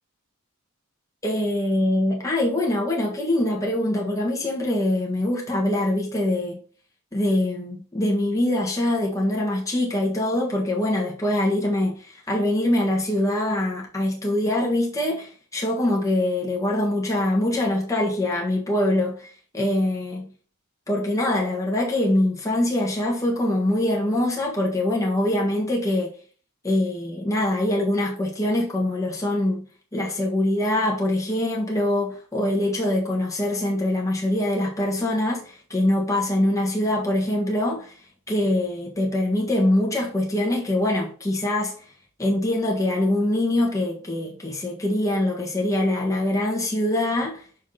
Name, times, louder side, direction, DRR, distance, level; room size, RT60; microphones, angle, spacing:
voice 1, 1.2-6.6 7.1-20.3 20.9-26.1 26.6-29.6 29.9-37.9 38.3-41.7 42.2-47.4, left 1 dB, 15° left, 1.4 m, -23 dB
6.2 x 5.9 x 3.8 m
head